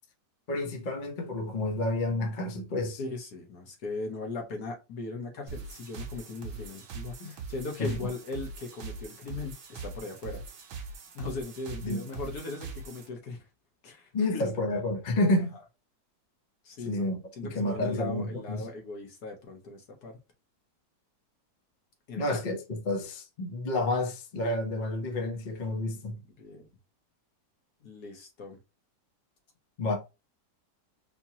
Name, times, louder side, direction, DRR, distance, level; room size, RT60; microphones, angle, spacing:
voice 1, 0.5-3.0 7.2-7.3 7.8-7.9 11.8-12.0 14.1-15.6 16.9-18.7 22.2-26.2 29.8-30.0, left 2 dB, 45° left, 0.6 m, -30 dB
voice 2, 3.0-10.4 10.8-10.9 11.1-13.4 13.8-14.4 16.6-17.1 17.4-20.2 22.1-22.4 26.4-26.7 27.8-28.6, left 3 dB, 65° left, 1.5 m, -39 dB
sound 1, 5.5-13.1, right 4 dB, 60° right, 1.0 m, -42 dB
4.4 x 2.8 x 2.8 m
omnidirectional pair, 1.9 m